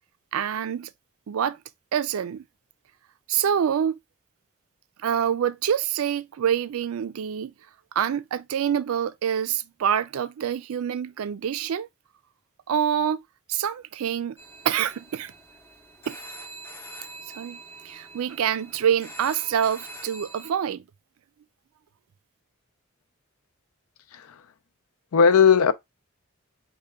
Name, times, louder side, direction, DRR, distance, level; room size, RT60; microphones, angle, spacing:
voice 1, 0.3-0.9 1.3-1.6 1.9-2.4 3.3-3.9 5.0-7.5 8.0-11.9 12.7-13.2 13.5-14.4 14.6-15.3 16.1-16.2 17.3-17.6 17.8-20.8, right 8 dB, 75° right, 0.4 m, -26 dB
sound 1, 14.4-20.5, right 2 dB, 10° left, 0.5 m, -44 dB
voice 2, 24.1-24.4 25.1-25.7, left 6 dB, 80° left, 0.4 m, -17 dB
5.5 x 2.2 x 3.4 m
head